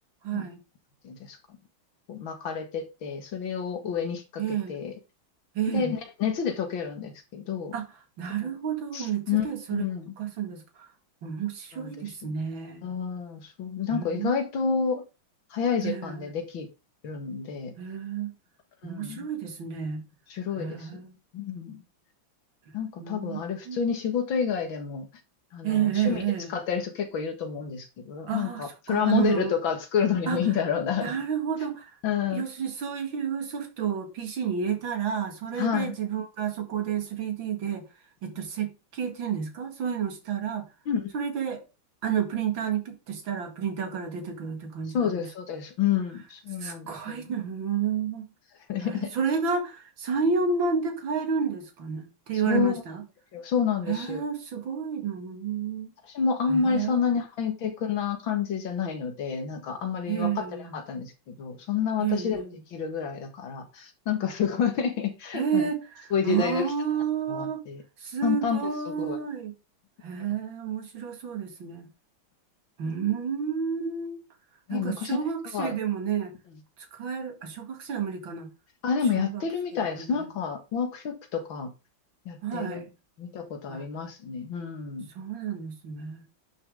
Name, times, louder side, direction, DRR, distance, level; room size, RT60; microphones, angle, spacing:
voice 1, 0.2-0.6 4.4-4.8 5.5-5.9 7.7-7.9 8.2-9.8 10.2-10.9 11.2-12.8 13.9-14.7 15.8-16.3 17.8-18.3 18.8-20.0 20.5-21.1 23.0-23.4 23.7-23.8 25.6-26.6 28.3-29.5 30.3-30.4 31.0-31.9 32.3-37.9 38.2-40.7 41.1-41.6 42.0-45.3 46.6-48.3 48.8-53.0 53.9-55.9 56.5-57.1 60.1-60.7 62.0-62.6 65.3-67.6 68.0-69.5 70.0-71.9 72.8-74.2 74.7-76.3 76.9-78.5 79.1-79.4 80.0-80.3 82.4-82.9 83.7-83.8 85.1-86.2, right 7 dB, 85° right, 2.8 m, -30 dB
voice 2, 1.0-1.4 2.1-4.9 5.7-7.7 8.4-8.5 8.9-9.5 9.7-10.1 11.7-12.3 12.8-15.0 15.5-16.7 17.0-17.7 18.8-19.3 20.3-21.0 21.3-21.8 22.7-25.1 25.5-26.2 26.5-31.1 32.0-32.5 35.6-35.9 40.9-41.1 44.9-47.3 48.7-49.1 52.5-52.8 53.3-54.2 56.1-62.4 62.7-65.7 66.1-66.7 67.3-67.8 68.2-68.7 69.0-69.2 74.7-75.2 75.5-75.8 78.8-81.7 82.3-82.8 83.2-85.1, left 7 dB, 90° left, 2.5 m, -29 dB
10.5 x 6.4 x 3.8 m
omnidirectional pair, 2.1 m